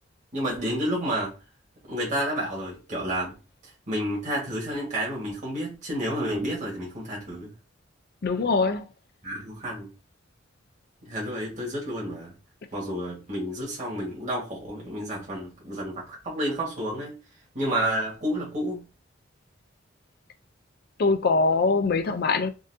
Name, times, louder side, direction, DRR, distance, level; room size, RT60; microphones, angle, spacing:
voice 1, 0.3-1.3 1.9-3.4 3.6-7.5 9.2-9.9 11.0-12.3 12.7-17.2 17.5-18.8, equal, 40° right, 1.4 m, -30 dB
voice 2, 8.2-8.9 21.0-22.5, left 3 dB, 55° left, 0.5 m, -22 dB
3.7 x 2.6 x 2.6 m
head